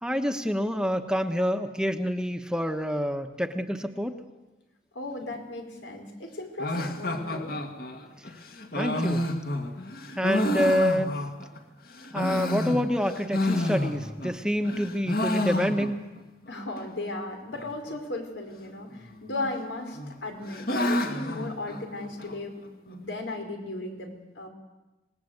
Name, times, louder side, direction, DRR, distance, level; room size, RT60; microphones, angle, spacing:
voice 1, 0.0-4.1 8.8-9.2 10.2-11.1 12.1-16.0, equal, 5° right, 6 dB, 1.1 m, -27 dB
voice 2, 4.9-7.5 16.5-24.5, left 2 dB, 90° left, 4 dB, 4.9 m, -36 dB
sound 1, 6.6-11.6 12.0-14.4 14.6-16.2 16.5-16.6 16.8-16.9 17.5-17.9 19.0-19.6 19.9-22.4, left 1 dB, 55° left, 2.1 m, -30 dB
27.0 x 19.5 x 8.1 m, 1.1 s
head